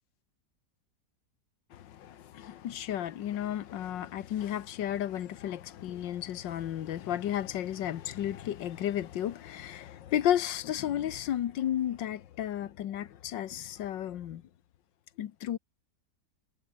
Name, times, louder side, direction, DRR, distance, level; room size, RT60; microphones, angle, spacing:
voice 1, 1.7-14.4 15.2-15.6, left 11 dB, 90° left, 1.7 m, -33 dB
omnidirectional pair, 1.9 m